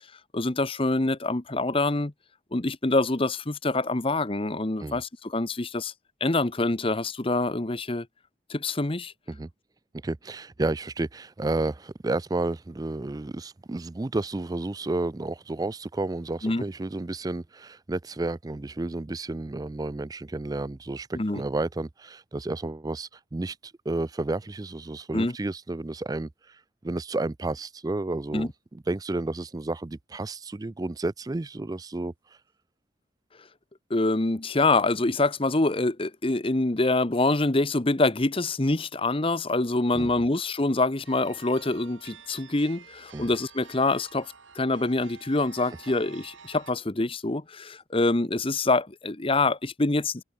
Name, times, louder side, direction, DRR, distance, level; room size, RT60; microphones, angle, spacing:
voice 1, 0.3-2.1 2.5-5.9 6.2-8.1 8.5-9.1 16.4-16.6 21.1-21.4 25.1-25.3 28.3-28.5 33.9-50.2, left 2 dB, 30° left, 1.0 m, -25 dB
voice 2, 10.0-32.4 39.9-40.1 43.1-43.3, right 2 dB, 20° right, 0.4 m, -31 dB
sound 1, 41.0-46.7, right 6 dB, 90° right, 3.1 m, -49 dB
head